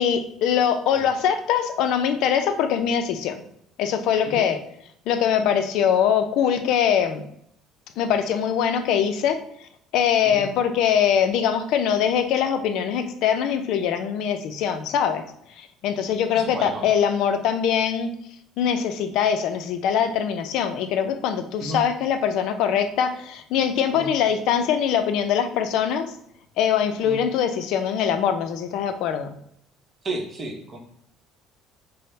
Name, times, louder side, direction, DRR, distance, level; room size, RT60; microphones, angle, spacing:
voice 1, 0.0-3.4 3.8-4.6 5.1-7.2 8.0-15.2 15.6-18.1 18.6-26.1 26.6-29.3, left 8 dB, 60° left, 8 dB, 0.4 m, -22 dB
voice 2, 16.3-16.9 21.6-21.8 23.9-24.1 27.0-27.2 30.0-30.8, right 2 dB, 25° right, 3 dB, 0.7 m, -33 dB
5.5 x 2.0 x 3.2 m, 0.72 s
cardioid pair, 170°, 0 cm